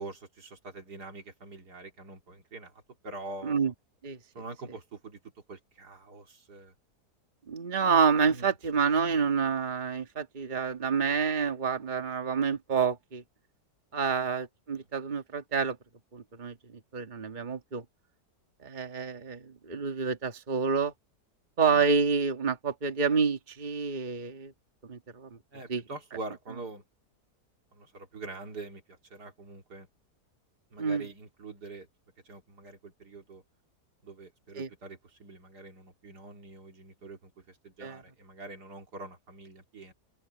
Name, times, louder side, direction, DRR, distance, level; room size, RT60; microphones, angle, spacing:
voice 1, 0.0-3.7 4.3-5.2 5.5-6.7 8.3-8.5 14.7-14.9 21.7-21.8 25.5-26.8 27.7-29.9 30.7-31.9 32.2-33.4 34.0-39.9, right 3 dB, 75° right, 3.3 m, -45 dB
voice 2, 7.5-13.2 13.9-15.8 16.1-16.5 16.9-17.8 18.6-20.9 21.6-24.5 24.9-25.3 25.7-25.8 30.8-31.0 34.6-34.7 37.8-38.0, right 5 dB, 30° right, 1.7 m, -28 dB
open air
omnidirectional pair, 1.7 m